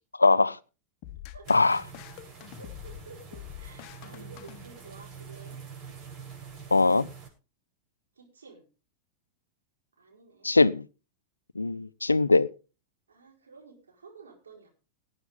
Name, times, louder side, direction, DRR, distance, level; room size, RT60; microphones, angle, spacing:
voice 1, 0.2-0.6 1.5-1.8 6.7-7.1 10.4-10.8 11.6-12.5, left 3 dB, 90° left, 0.6 m, -21 dB
sound 1, 1.0-5.2, left 13 dB, 45° left, 0.9 m, -46 dB
sound 2, 1.4-7.3, right 6 dB, 35° right, 7.2 m, -46 dB
voice 2, 2.6-5.6 8.1-8.7 10.0-10.5 13.1-14.7, right 4 dB, 80° right, 4.7 m, -51 dB
18.5 x 8.8 x 3.7 m
figure-of-eight pair, 95°, 0 cm